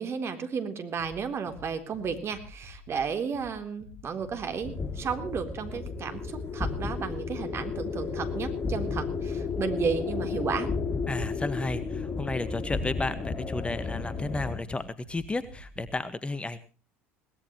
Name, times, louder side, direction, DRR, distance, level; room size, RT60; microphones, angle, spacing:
voice 1, 0.0-10.7, right 6 dB, 35° right, 7 dB, 3.7 m, -33 dB
sound 1, 1.0-16.0, left 1 dB, 85° right, 7.2 m, -50 dB
sound 2, 4.6-14.6, left 4 dB, 35° left, 2.8 m, -33 dB
voice 2, 11.1-16.6, left 2 dB, 15° left, 13 dB, 1.5 m, -33 dB
22.0 x 18.5 x 3.1 m, 0.34 s
hypercardioid pair, 70°, 7 cm